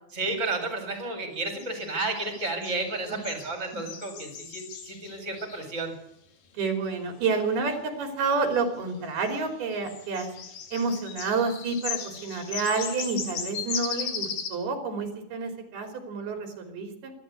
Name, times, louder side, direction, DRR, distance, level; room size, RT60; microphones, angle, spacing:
voice 1, 0.1-5.9, right 2 dB, 20° right, 5 dB, 4.6 m, -32 dB
sound 1, 1.6-5.8 9.3-9.4 9.7-14.5, left 7 dB, 70° left, 4.2 m, -37 dB
voice 2, 2.6-3.2 6.6-10.3 10.7-17.1, right 4 dB, 85° right, 5 dB, 5.1 m, -29 dB
24.5 x 13.0 x 8.3 m, 0.80 s
omnidirectional pair, 4.3 m